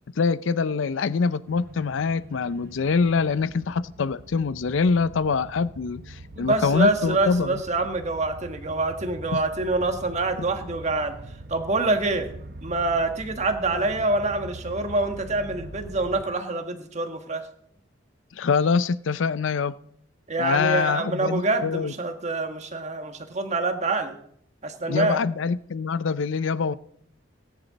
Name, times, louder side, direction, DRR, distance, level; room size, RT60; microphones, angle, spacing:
voice 1, 0.2-7.6 9.3-9.4 18.4-19.8 20.4-21.9 24.9-26.7, left 5 dB, 80° left, 16 dB, 0.5 m, -24 dB
sound 1, 1.5-16.2, right 1 dB, 55° right, 0.8 m, -43 dB
voice 2, 6.3-11.1 11.5-12.3 12.6-17.4 20.3-24.2 24.6-25.2, right 2 dB, 35° right, 6 dB, 1.4 m, -26 dB
18.5 x 10.0 x 4.1 m, 0.68 s
head